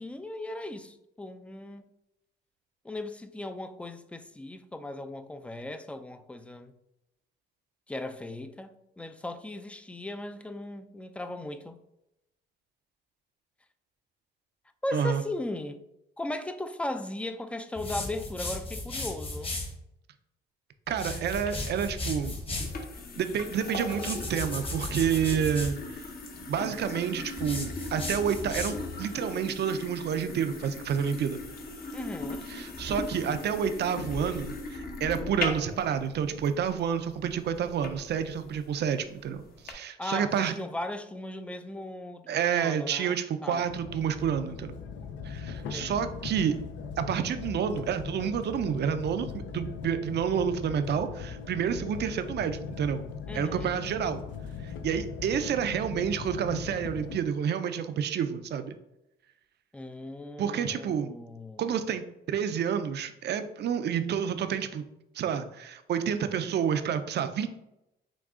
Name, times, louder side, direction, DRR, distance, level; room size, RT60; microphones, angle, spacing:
voice 1, 0.0-1.9 2.8-6.7 7.9-11.8 14.8-15.8 16.2-19.5 31.9-32.5 40.0-43.7 45.6-46.1 53.3-53.7 59.7-61.7, left 1 dB, 5° left, 0.4 m, -37 dB
voice 2, 14.9-15.2 20.9-22.4 23.2-26.1 26.5-31.4 32.5-40.6 42.3-44.7 45.2-46.5 47.0-53.1 53.3-54.2 54.6-58.7 60.4-61.1 61.6-64.9 65.1-67.5, right 8 dB, 55° right, 0.5 m, -29 dB
sound 1, 17.8-19.7 20.9-22.8 23.9-25.8 27.4-29.0, left 2 dB, 30° left, 1.1 m, -35 dB
sound 2, 21.3-39.7, left 3 dB, 50° left, 0.9 m, -39 dB
sound 3, 43.7-57.2, left 6 dB, 70° left, 0.6 m, -39 dB
6.0 x 2.3 x 3.7 m
cardioid pair, 90°, 20 cm